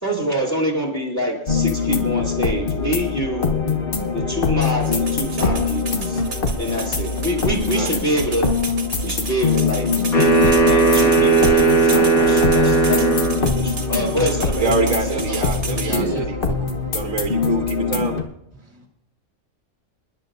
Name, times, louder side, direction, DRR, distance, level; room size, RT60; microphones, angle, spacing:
voice 1, 0.0-3.5 4.1-6.2 6.6-8.5 9.0-10.3 10.6-15.4, equal, 10° left, -1 dB, 2.9 m, -26 dB
sound 1, 1.5-18.2, left 5 dB, 40° left, 1.1 m, -23 dB
sound 2, 4.6-15.9, right 4 dB, 45° right, 1.5 m, -33 dB
sound 3, 10.1-13.5, right 4 dB, 85° left, 2.5 m, -16 dB
voice 2, 14.6-16.2 16.6-18.2, right 4 dB, 65° right, 2 dB, 1.4 m, -25 dB
voice 3, 15.8-17.0 18.6-18.9, right 2 dB, 10° right, -3 dB, 1.5 m, -30 dB
27.0 x 11.0 x 2.5 m, 0.76 s
omnidirectional pair, 1.5 m